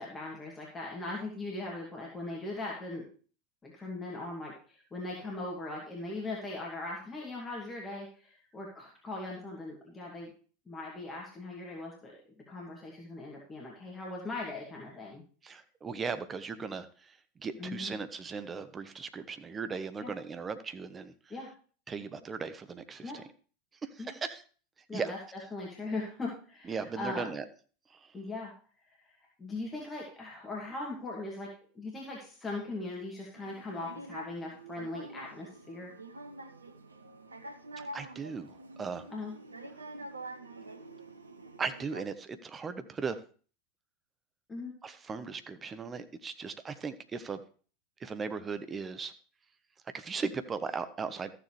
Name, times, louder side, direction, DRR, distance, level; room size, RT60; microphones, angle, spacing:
voice 1, 0.0-3.1 3.6-10.3 10.7-12.1 12.5-15.2 17.6-17.9 20.0-20.1 21.3-21.5 23.0-23.2 24.0-24.2 24.9-25.2 25.5-27.3 28.1-28.5 29.4-31.5 31.8-36.0 39.1-39.3 44.5-44.7, left 2 dB, 20° left, -3 dB, 2.4 m, -39 dB
voice 2, 15.4-21.3 21.9-23.2 23.8-24.4 24.9-25.1 26.6-27.4 27.9-28.1 37.8-39.1 41.6-43.2 44.8-47.4 48.0-49.1 49.9-51.3, right 5 dB, 20° right, 10 dB, 0.9 m, -38 dB
sound 1, 33.3-42.0, right 1 dB, 85° right, 0.9 m, -46 dB
14.0 x 6.9 x 3.2 m, 0.41 s
figure-of-eight pair, 85°, 0 cm